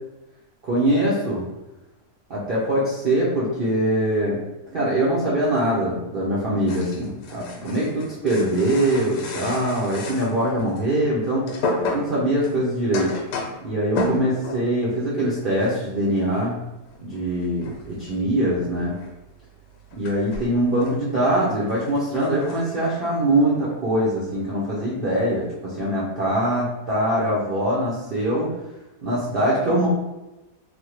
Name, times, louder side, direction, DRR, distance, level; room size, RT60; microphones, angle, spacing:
voice 1, 0.6-1.5 2.3-4.4 4.7-11.5 11.9-13.2 13.6-16.6 17.0-19.0 19.9-28.5 29.0-29.9, right 1 dB, 75° right, -7 dB, 0.5 m, -23 dB
sound 1, 6.7-10.9 11.2-14.8 15.0-15.3 15.6-15.9 16.2-24.2 24.5-24.9 25.1-26.1, left 2 dB, 85° left, 1.2 m, -33 dB
3.4 x 2.1 x 3.0 m, 0.99 s
omnidirectional pair, 1.8 m